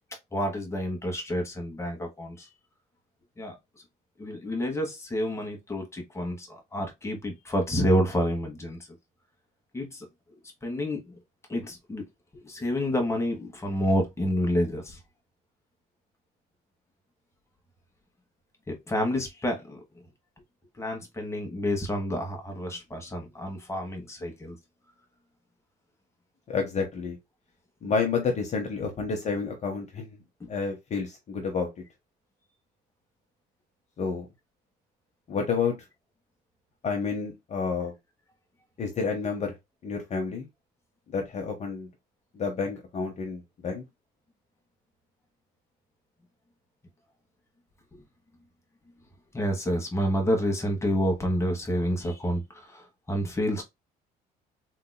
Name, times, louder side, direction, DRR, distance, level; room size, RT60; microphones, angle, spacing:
voice 1, 0.3-2.5 3.4-3.5 4.2-8.8 9.7-10.1 10.6-11.1 11.5-12.0 12.3-15.0 18.7-19.8 20.8-24.6 30.4-30.5 47.9-48.0 49.3-53.6, equal, 15° left, 1.3 m, -29 dB
voice 2, 26.5-27.2 27.8-30.1 30.5-31.7 34.0-34.3 35.3-35.7 36.8-37.9 38.8-39.5 39.8-40.5 41.1-41.9 42.3-43.8, left 5 dB, 40° left, 0.9 m, -29 dB
3.8 x 2.8 x 2.2 m
cardioid pair, 110°, 17 cm